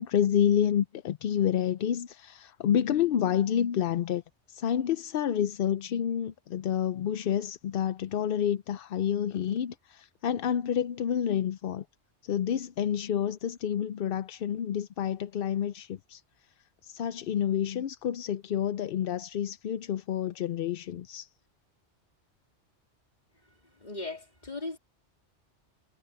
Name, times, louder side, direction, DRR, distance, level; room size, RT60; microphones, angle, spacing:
voice 1, 0.0-4.2 4.5-11.8 12.2-16.2 16.8-21.3, left 9 dB, 60° left, 0.7 m, -29 dB
voice 2, 23.7-24.8, left 3 dB, 40° left, 3.6 m, -38 dB
omnidirectional pair, 1.2 m